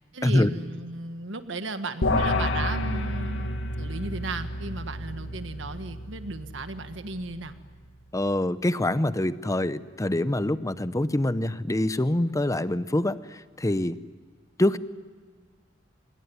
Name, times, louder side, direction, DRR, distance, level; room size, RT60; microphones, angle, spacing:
voice 1, 0.1-3.5 3.8-7.5, right 2 dB, 70° right, 9 dB, 1.7 m, -35 dB
sound 1, 2.0-7.5, left 2 dB, 90° left, 2.2 m, -30 dB
voice 2, 8.1-14.0 14.6-14.8, left 1 dB, 15° left, 14 dB, 0.8 m, -25 dB
25.5 x 21.5 x 9.6 m, 1.5 s
head